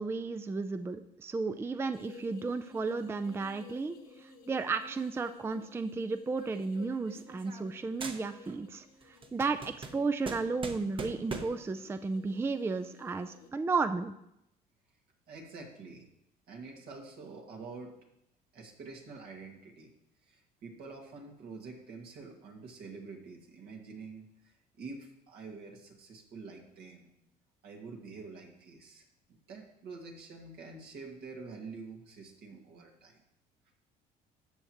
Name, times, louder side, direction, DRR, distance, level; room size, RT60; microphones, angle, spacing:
voice 1, 0.0-14.1, right 4 dB, 15° right, 9 dB, 0.4 m, -34 dB
sound 1, 1.9-13.5, left 4 dB, 65° left, 1.2 m, -55 dB
sound 2, 6.4-7.7 8.0-8.7 9.0-11.7, right 4 dB, 30° right, 0.9 m, -42 dB
voice 2, 15.3-16.1 16.5-18.0 18.5-19.9 20.3-27.1 27.6-33.2, right 4 dB, 70° right, 1 dB, 2.0 m, -47 dB
13.5 x 7.8 x 3.0 m, 0.80 s
cardioid pair, 110°, 17 cm